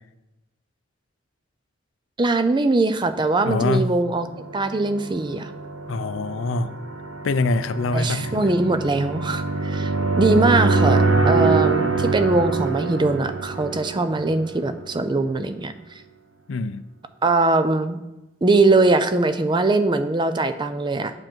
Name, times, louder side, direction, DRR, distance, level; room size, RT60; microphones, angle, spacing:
voice 1, 2.2-4.3 4.5-5.5 7.9-16.0 17.2-18.0 18.4-21.1, right 2 dB, 25° right, 10 dB, 0.4 m, -21 dB
voice 2, 3.4-3.9 5.9-6.7 7.2-8.4 16.5-16.8, left 3 dB, 70° left, 12 dB, 0.5 m, -24 dB
sound 1, 4.1-14.9, right 3 dB, 90° right, 0.8 m, -24 dB
7.6 x 6.1 x 4.5 m, 0.99 s
head